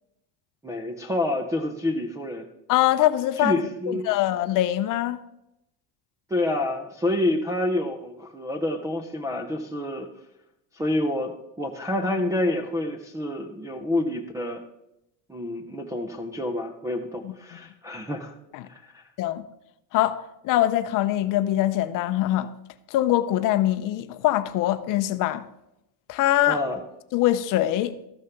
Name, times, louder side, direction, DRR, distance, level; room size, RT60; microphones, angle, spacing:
voice 1, 0.6-2.5 3.4-4.1 6.3-10.1 10.7-14.6 15.3-18.3 18.7-19.0 26.5-26.8, left 1 dB, 10° right, 0.3 m, -28 dB
voice 2, 2.7-3.6 3.9-5.2 17.2-17.3 18.5-18.6 19.2-19.4 19.9-22.5 22.9-25.4 26.1-26.6 27.1-27.9, left 14 dB, 45° left, 0.6 m, -23 dB
13.5 x 6.4 x 5.8 m
cardioid pair, 170°, 46 cm